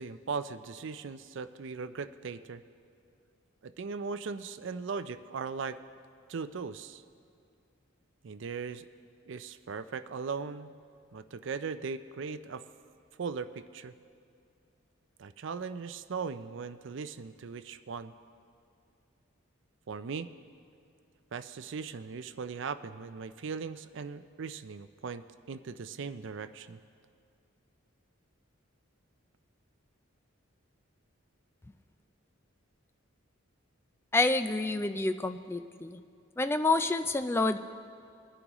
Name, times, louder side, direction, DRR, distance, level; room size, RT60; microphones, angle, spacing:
voice 1, 0.0-2.6 3.6-5.8 6.3-7.0 8.2-8.9 9.3-10.7 11.1-12.6 13.2-13.9 15.2-18.1 19.9-20.3 21.3-25.2 25.5-26.8, right 5 dB, 60° right, 12 dB, 0.4 m, -38 dB
voice 2, 34.1-36.0 36.4-37.6, left 3 dB, 10° left, 9 dB, 0.3 m, -28 dB
21.0 x 9.8 x 3.0 m, 2.5 s
head